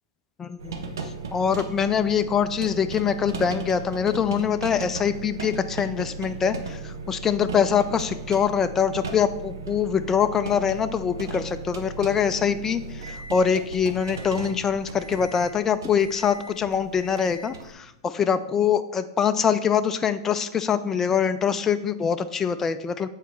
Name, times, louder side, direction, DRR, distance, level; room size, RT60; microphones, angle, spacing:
voice 1, 0.4-0.8 1.0-23.1, left 7 dB, 20° left, 10 dB, 0.4 m, -24 dB
sound 1, 0.6-17.7, right 4 dB, 75° right, 1.0 m, -36 dB
7.4 x 4.0 x 4.5 m, 0.85 s
hypercardioid pair, 105°, 2 cm